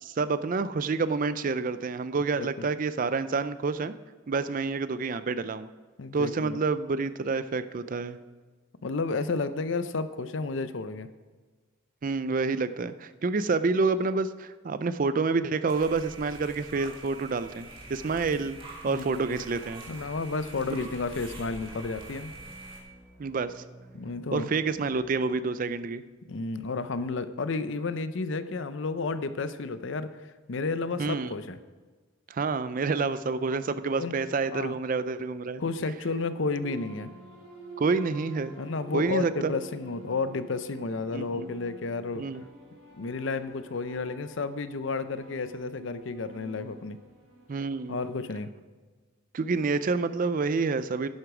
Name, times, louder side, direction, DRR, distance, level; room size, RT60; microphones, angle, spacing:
voice 1, 0.0-3.9 4.3-5.7 6.1-8.2 12.0-18.6 18.8-19.8 20.7-20.8 23.2-23.6 24.3-26.0 31.0-31.3 32.3-35.6 37.8-38.6 38.9-39.5 41.1-41.5 42.2-42.4 47.5-48.0 49.3-51.1, right 4 dB, 40° right, 13 dB, 0.4 m, -28 dB
voice 2, 2.4-2.7 6.0-6.6 8.8-11.1 18.9-19.2 19.9-22.3 23.9-24.5 26.3-30.1 30.5-31.6 33.9-34.2 34.5-34.8 35.6-37.1 38.6-42.2 42.9-47.0 47.9-48.5, left 3 dB, 65° left, 12 dB, 0.6 m, -32 dB
sound 1, 15.7-22.8, right 2 dB, 25° right, 1.8 m, -45 dB
sound 2, 22.0-25.9, right 1 dB, 10° left, 3.3 m, -52 dB
sound 3, 36.6-48.1, right 3 dB, 70° right, 3.5 m, -48 dB
11.0 x 8.0 x 4.9 m, 1.3 s
head